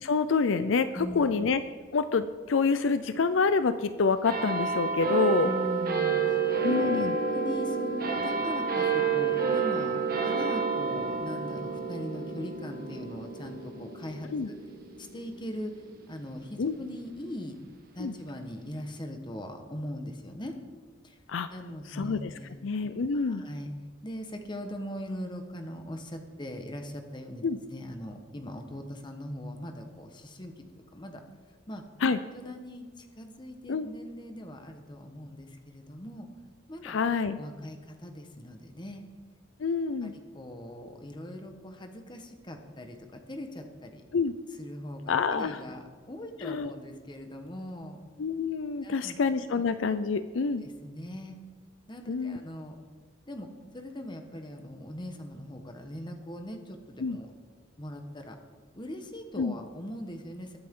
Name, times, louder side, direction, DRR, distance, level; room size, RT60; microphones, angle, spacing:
voice 1, 0.0-1.6 1.9-5.5 6.6-7.1 14.3-14.5 16.6-16.7 18.0-18.1 21.3-21.5 21.9-22.3 22.6-23.4 27.4-27.6 32.0-32.2 33.7-33.9 36.8-37.4 39.6-40.1 44.1-44.3 45.1-45.6 46.4-46.7 48.2-50.6 52.1-52.4 57.0-57.2 59.4-59.6, left 4 dB, 70° left, 12 dB, 0.5 m, -27 dB
voice 2, 0.9-1.3 5.4-6.2 6.6-10.0 10.2-14.6 15.0-15.7 16.1-17.6 17.9-20.5 21.0-21.2 21.5-22.6 23.1-23.7 24.0-27.4 27.7-30.5 30.9-31.2 31.7-31.8 32.3-36.3 36.7-37.0 37.4-39.0 40.0-40.1 40.3-44.0 44.6-48.0 48.8-49.2 50.6-51.4 51.9-52.7 53.3-53.5 53.7-57.3 57.8-58.4 58.7-60.6, left 1 dB, 25° left, 5 dB, 1.2 m, -40 dB
sound 1, 4.2-17.1 17.8-17.9, right 5 dB, 50° right, 1.6 m, -30 dB
21.0 x 8.7 x 3.8 m, 1.5 s
head